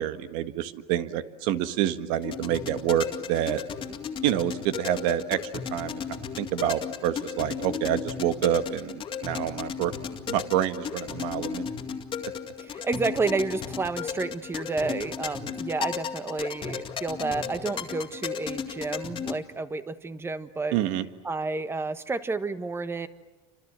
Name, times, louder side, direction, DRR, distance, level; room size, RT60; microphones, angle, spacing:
voice 1, 0.0-3.6 4.2-5.4 5.7-9.9 10.3-11.7 20.7-21.1, right 11 dB, 75° right, 10 dB, 1.7 m, -27 dB
sound 1, 2.2-19.3, left 7 dB, 35° left, 2.1 m, -35 dB
voice 2, 12.6-20.8 21.2-23.1, right 3 dB, 15° right, 11 dB, 1.3 m, -30 dB
29.0 x 26.0 x 7.6 m, 1.2 s
cardioid pair, 125°, 15 cm